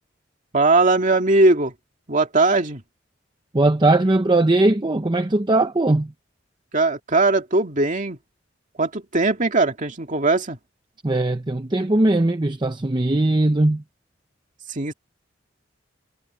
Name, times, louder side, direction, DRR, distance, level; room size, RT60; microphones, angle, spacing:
voice 1, 0.5-1.7 2.1-2.8 6.7-8.2 8.8-10.6 14.7-14.9, right 2 dB, 40° right, 2.2 m, -19 dB
voice 2, 3.5-6.1 11.0-13.8, right 2 dB, 25° right, 0.8 m, -19 dB
head